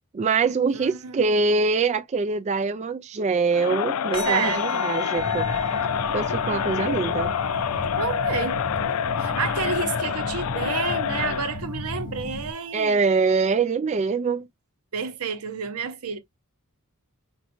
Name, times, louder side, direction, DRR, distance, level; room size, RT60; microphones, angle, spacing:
voice 1, 0.1-5.4 6.1-7.3 12.7-14.5, right 4 dB, 30° right, 0.3 m, -24 dB
voice 2, 0.7-1.2 4.2-4.9 8.0-8.6 9.2-13.0 14.9-16.2, right 5 dB, 80° right, 0.9 m, -30 dB
Crowd, 3.5-11.6, left 8 dB, 75° left, 0.4 m, -27 dB
sound 1, 4.1-12.8, left 1 dB, 20° left, 1.0 m, -39 dB
sound 2, 5.2-12.5, left 1 dB, 45° left, 0.7 m, -35 dB
5.2 x 2.3 x 3.0 m
head